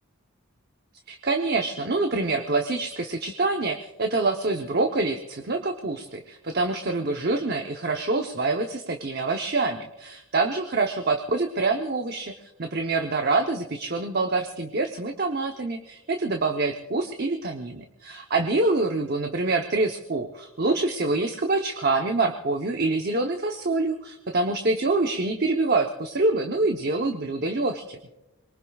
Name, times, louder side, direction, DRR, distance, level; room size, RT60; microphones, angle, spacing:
voice 1, 1.1-28.0, right 3 dB, 45° right, 4 dB, 0.8 m, -26 dB
26.0 x 22.5 x 2.4 m, 0.98 s
head